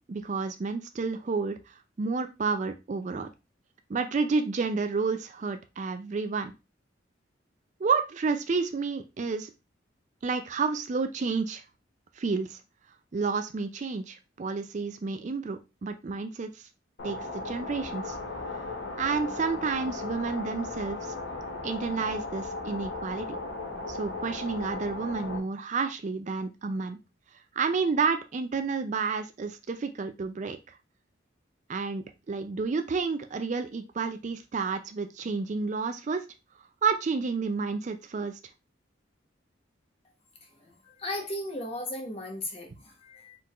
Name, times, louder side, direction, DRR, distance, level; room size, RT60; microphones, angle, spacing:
voice 1, 0.1-3.3 3.9-6.5 7.8-9.5 10.2-11.6 12.2-12.6 13.1-16.7 17.0-18.2 19.0-21.1 21.6-23.3 23.9-27.0 27.6-30.6 31.7-36.2 36.8-38.4 42.7-42.8, right 4 dB, 40° right, 0.4 m, -30 dB
sound 1, 17.0-25.4, left 2 dB, 80° left, 1.0 m, -36 dB
voice 2, 40.9-43.4, left 1 dB, 30° left, 0.9 m, -36 dB
4.6 x 3.7 x 2.4 m
head